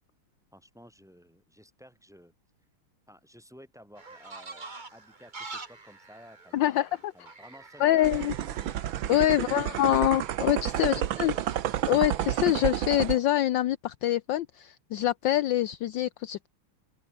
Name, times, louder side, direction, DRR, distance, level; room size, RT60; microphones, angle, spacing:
voice 1, 0.5-2.3 3.1-6.9 7.1-8.7 9.2-10.1 10.8-11.4 11.8-11.9, equal, ahead, 7.5 m, -54 dB
sound 1, 4.0-12.3, right 3 dB, 20° right, 1.8 m, -47 dB
voice 2, 6.5-7.1 7.8-8.3 9.1-11.3 11.9-16.5, left 13 dB, 70° left, 1.3 m, -25 dB
sound 2, 8.0-13.2, right 11 dB, 70° right, 1.7 m, -30 dB
open air
omnidirectional pair, 2.4 m